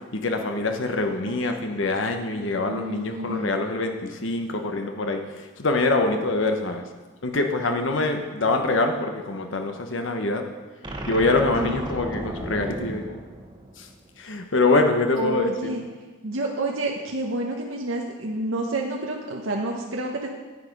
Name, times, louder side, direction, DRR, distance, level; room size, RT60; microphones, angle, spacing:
voice 1, 0.1-6.8 7.2-10.4 11.1-13.2 13.8-13.9 14.2-15.5, left 2 dB, 70° left, 5 dB, 1.0 m, -24 dB
voice 2, 2.5-3.5 11.6-11.8 15.2-15.8 16.2-20.3, right 1 dB, 80° right, 0 dB, 1.0 m, -29 dB
sound 1, 10.8-14.2, right 1 dB, 25° right, 1.1 m, -34 dB
10.5 x 8.6 x 5.2 m, 1.3 s
head